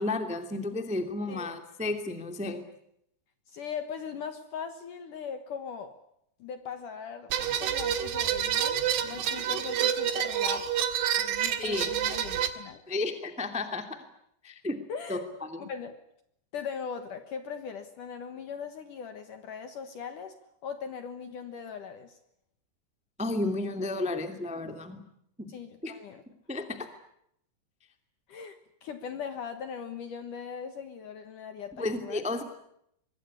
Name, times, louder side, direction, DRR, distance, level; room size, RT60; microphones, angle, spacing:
voice 1, 0.0-2.6 11.6-11.9 12.9-13.8 14.4-14.7 15.1-15.6 23.2-25.0 25.4-25.5 25.8-25.9 26.5-26.9 31.8-32.4, left 2 dB, 5° right, 7 dB, 0.8 m, -32 dB
voice 2, 3.5-5.9 6.4-10.6 11.2-12.8 14.9-15.3 15.6-16.0 16.5-20.4 20.6-22.2 25.5-26.2 28.3-32.2, left 6 dB, 60° left, 9 dB, 2.3 m, -39 dB
sound 1, 7.3-12.5, right 10 dB, 70° right, 3.6 m, -28 dB
25.0 x 21.5 x 9.8 m, 0.75 s
omnidirectional pair, 5.3 m